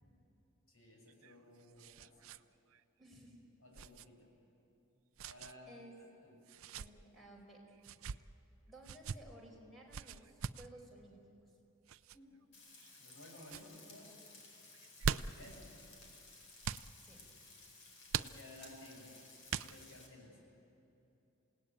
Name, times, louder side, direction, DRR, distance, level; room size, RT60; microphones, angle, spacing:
voice 1, 0.7-2.3 3.6-4.3 5.2-6.4 12.1-12.4 13.0-14.3 15.1-15.8 18.1-19.3 19.6-20.4, left 1 dB, 80° left, -1 dB, 7.4 m, -57 dB
sound 1, 1.1-2.4 2.7-2.8 3.7-4.1 5.2-5.5 6.5-6.9 7.8-8.2 8.8-9.2 9.9-10.7 11.9-12.2 12.8-13.2 13.4-13.7 14.7-15.5 16.6-16.9 18.1-18.7 19.5-20.0, right 6 dB, 80° right, 0.5 m, -41 dB
voice 2, 3.0-3.5 5.7-5.9 6.8-7.8 8.7-11.2 17.0-17.2, right 1 dB, ahead, -2 dB, 4.7 m, -56 dB
Frying (food), 12.5-20.1, left 3 dB, 65° left, 4.7 m, -58 dB
28.0 x 18.0 x 9.2 m, 2.8 s
head